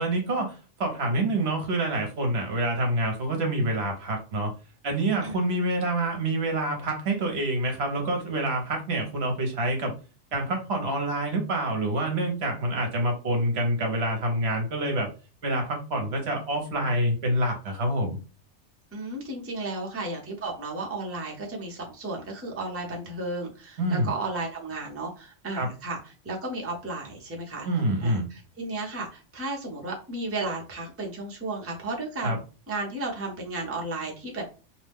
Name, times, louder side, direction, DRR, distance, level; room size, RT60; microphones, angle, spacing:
voice 1, 0.0-4.5 4.8-9.9 10.3-15.1 15.4-18.2 23.8-24.1 25.5-25.7 27.6-28.3 32.2-32.4, right 1 dB, 60° right, 3 dB, 1.0 m, -27 dB
voice 2, 5.2-5.6 18.9-26.0 26.2-27.7 28.0-32.4 32.7-34.5, right 2 dB, 15° right, -1 dB, 0.7 m, -34 dB
2.7 x 2.1 x 3.4 m, 0.34 s
omnidirectional pair, 1.3 m